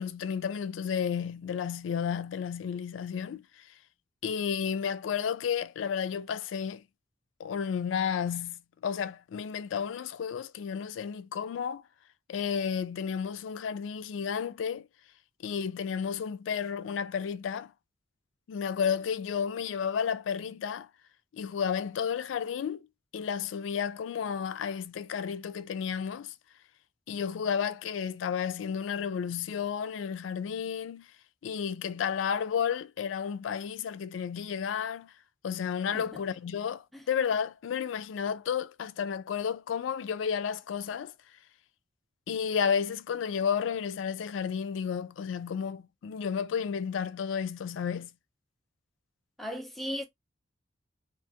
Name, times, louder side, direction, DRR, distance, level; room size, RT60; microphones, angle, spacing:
voice 1, 0.0-3.4 4.2-6.8 7.4-11.8 12.3-14.9 15.4-17.7 18.5-20.9 21.3-22.9 23.1-26.3 27.1-31.1 31.4-35.1 35.4-41.1 42.3-48.1, left 7 dB, 90° left, 0.3 m, -32 dB
voice 2, 49.4-50.0, equal, ahead, 0.6 m, -36 dB
2.5 x 2.3 x 2.6 m
head